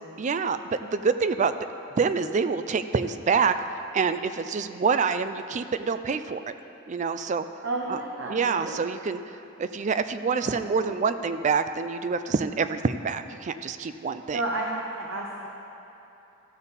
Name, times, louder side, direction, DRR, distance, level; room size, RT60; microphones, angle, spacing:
voice 1, 0.2-1.5 2.0-3.5 3.9-6.4 6.9-7.5 7.9-8.0 8.3-9.2 9.6-14.4, right 5 dB, 35° right, 11 dB, 0.3 m, -26 dB
voice 2, 7.6-8.9 10.4-11.3 14.3-15.5, right 2 dB, 60° right, -1 dB, 0.8 m, -33 dB
14.5 x 7.0 x 4.1 m, 2.9 s
head